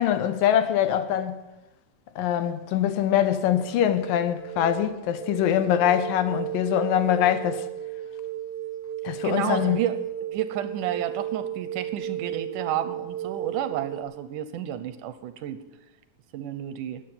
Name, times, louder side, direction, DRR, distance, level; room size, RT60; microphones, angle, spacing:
voice 1, 0.0-1.4 2.2-7.6 9.0-9.8, left 10 dB, 90° left, 2.7 m, -23 dB
sound 1, 3.5-14.0, right 12 dB, 20° right, 3.2 m, -34 dB
voice 2, 9.2-15.6 16.3-17.0, right 10 dB, 75° right, 2.3 m, -31 dB
12.5 x 9.3 x 9.4 m
omnidirectional pair, 3.9 m